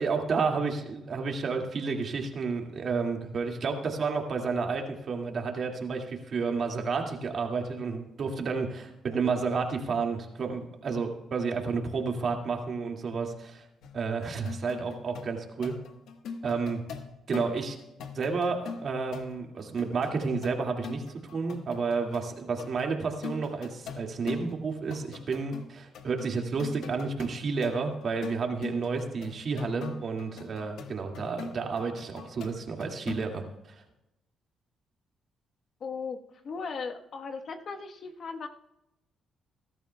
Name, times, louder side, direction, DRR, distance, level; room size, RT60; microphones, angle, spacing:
voice 1, 0.0-13.6 13.9-15.7 16.4-16.8 17.3-17.8 18.1-33.8, right 4 dB, 50° right, 2 dB, 2.1 m, -31 dB
sound 1, 13.8-22.3 22.6-24.6 24.9-25.7 25.9-33.3, left 5 dB, 80° left, 1.2 m, -42 dB
voice 2, 35.8-38.5, left 5 dB, 55° left, 4 dB, 1.2 m, -37 dB
21.0 x 12.5 x 2.3 m, 0.91 s
cardioid pair, 90°, 0 cm